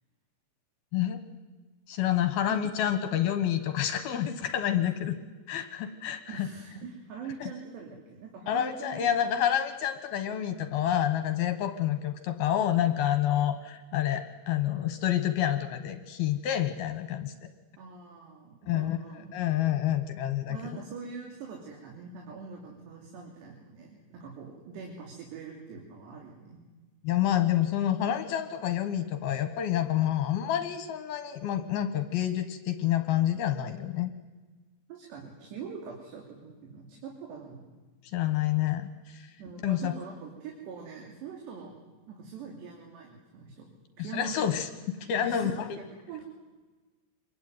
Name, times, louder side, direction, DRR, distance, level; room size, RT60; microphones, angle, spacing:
voice 1, 1.9-5.2 5.5-6.5 7.4-7.5 8.5-17.5 18.7-19.0 19.3-20.6 27.0-34.1 38.0-39.3 39.6-39.9 44.1-44.7 45.1-45.7, left 11 dB, 65° left, 9 dB, 2.8 m, -28 dB
voice 2, 6.3-9.2 17.8-19.3 20.5-26.6 34.9-37.8 39.4-41.8 42.1-43.7 44.0-44.7 45.2-46.2, right 5 dB, 65° right, 0 dB, 5.1 m, -43 dB
26.5 x 22.0 x 9.4 m, 1.3 s
omnidirectional pair, 5.3 m